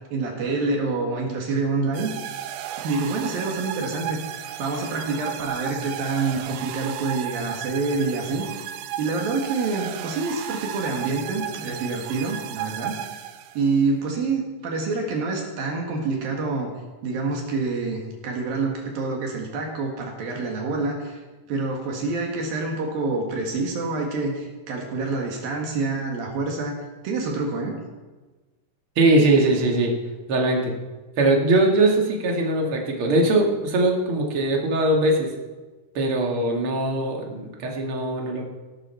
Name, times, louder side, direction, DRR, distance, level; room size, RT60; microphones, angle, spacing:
voice 1, 0.1-2.1 2.8-8.5 9.0-13.2 13.6-16.7 17.0-21.2 21.5-26.8 27.0-27.8, right 3 dB, 65° right, 0 dB, 3.5 m, -27 dB
sound 1, 1.9-13.8, right 11 dB, 90° right, 2.8 m, -34 dB
voice 2, 29.0-29.9 30.3-30.7 31.2-35.3 35.9-38.4, right 2 dB, 40° right, 0 dB, 2.3 m, -21 dB
17.5 x 12.5 x 4.5 m, 1.3 s
omnidirectional pair, 4.5 m